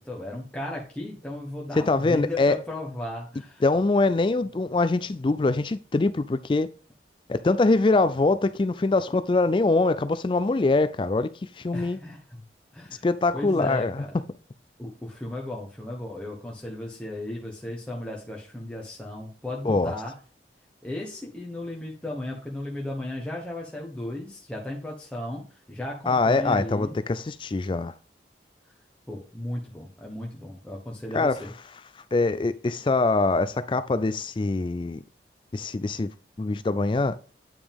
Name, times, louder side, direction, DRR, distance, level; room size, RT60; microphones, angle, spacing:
voice 1, 0.0-3.6 11.7-12.4 12.7-13.1 13.3-14.1 14.8-20.1 20.8-27.0 29.1-31.5, left 1 dB, 5° left, 1.2 m, -35 dB
voice 2, 1.8-2.6 3.6-6.7 7.3-12.0 13.0-14.0 19.6-19.9 26.1-27.9 31.1-31.4 32.1-35.0 35.5-36.1 36.4-37.2, left 3 dB, 30° left, 0.3 m, -23 dB
9.1 x 4.9 x 3.5 m
head